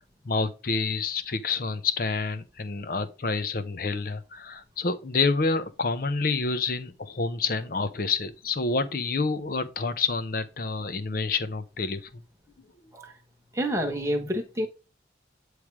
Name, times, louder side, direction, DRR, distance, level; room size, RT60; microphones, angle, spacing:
voice 1, 0.2-12.2, left 4 dB, 50° left, 0.6 m, -28 dB
voice 2, 13.5-14.7, equal, 15° right, 1.1 m, -28 dB
8.7 x 3.3 x 4.7 m
head